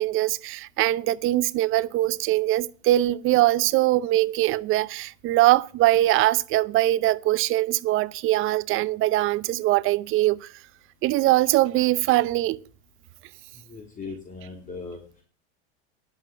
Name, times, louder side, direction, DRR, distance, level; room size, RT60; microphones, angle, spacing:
voice 1, 0.0-10.5 11.0-12.6, right 16 dB, 40° right, 0.7 m, -22 dB
voice 2, 13.7-15.2, left 4 dB, 25° left, 3.2 m, -39 dB
11.0 x 7.8 x 7.2 m
hypercardioid pair, 115°, 33 cm